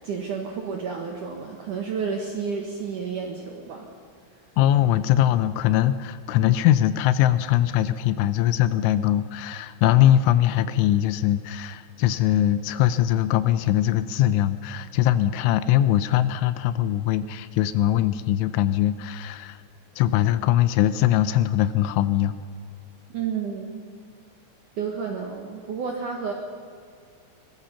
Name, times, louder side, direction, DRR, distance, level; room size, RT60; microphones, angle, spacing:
voice 1, 0.0-4.0 23.1-23.9 24.8-26.3, right 6 dB, 70° right, 2 dB, 2.0 m, -31 dB
voice 2, 4.6-19.6 20.0-22.4, left 12 dB, 80° left, 13 dB, 3.0 m, -21 dB
23.0 x 20.5 x 5.7 m, 2.3 s
omnidirectional pair, 5.8 m